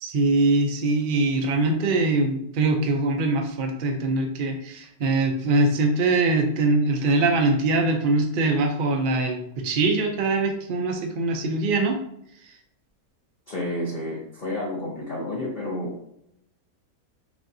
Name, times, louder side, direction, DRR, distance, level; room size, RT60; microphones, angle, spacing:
voice 1, 0.0-12.0, right 2 dB, 50° right, 3 dB, 0.6 m, -23 dB
voice 2, 13.5-16.0, left 1 dB, 40° left, -6 dB, 0.8 m, -30 dB
6.0 x 2.6 x 2.7 m, 0.74 s
omnidirectional pair, 1.6 m